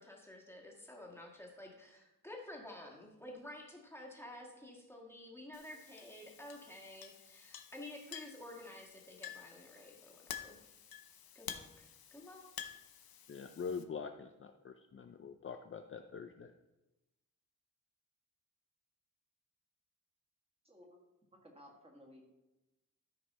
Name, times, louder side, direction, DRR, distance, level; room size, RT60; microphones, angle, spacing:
voice 1, 0.0-10.8 11.3-12.4, left 1 dB, 5° left, -1 dB, 1.5 m, -51 dB
Chink clink, 5.5-13.8, left 9 dB, 90° left, 0.8 m, -51 dB
voice 2, 13.3-16.5, left 5 dB, 35° left, 6 dB, 0.4 m, -44 dB
voice 3, 20.6-21.0 21.3-22.3, left 1 dB, 15° right, 0 dB, 1.7 m, -58 dB
13.0 x 5.3 x 4.2 m, 1.0 s
wide cardioid pair, 175°, 35 cm